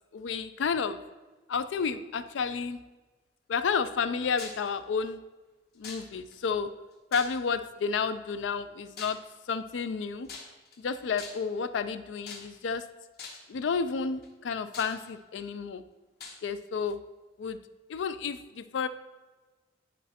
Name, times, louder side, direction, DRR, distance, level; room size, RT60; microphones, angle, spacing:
voice 1, 0.1-1.0 1.5-2.8 3.5-5.2 5.8-6.7 7.1-9.2 9.5-10.3 10.8-12.8 13.5-15.8 16.4-17.0 17.4-17.6 17.9-18.9, left 5 dB, 85° left, 12 dB, 0.4 m, -31 dB
sound 1, 4.4-4.7 5.8-6.4 7.1-7.7 9.0-9.3 10.3-10.8 11.2-11.6 12.3-12.7 13.2-13.5 14.2-14.3 14.7-15.4 16.2-16.4, left 4 dB, 55° left, 1.0 m, -43 dB
10.0 x 4.1 x 2.8 m, 1.2 s
head